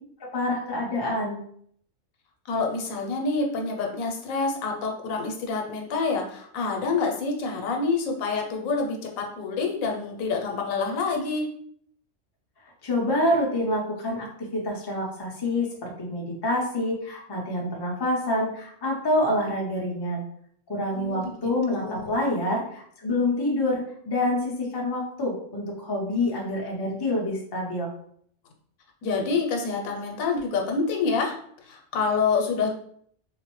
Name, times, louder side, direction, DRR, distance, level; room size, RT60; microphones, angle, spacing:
voice 1, 0.2-1.4 12.8-20.2 20.7-27.9, left 1 dB, 25° left, -2 dB, 0.5 m, -27 dB
voice 2, 2.5-11.5 20.9-22.2 29.0-31.4 31.6-32.7, left 4 dB, 90° left, 2 dB, 1.1 m, -27 dB
3.9 x 2.1 x 3.0 m, 0.64 s
omnidirectional pair, 1.4 m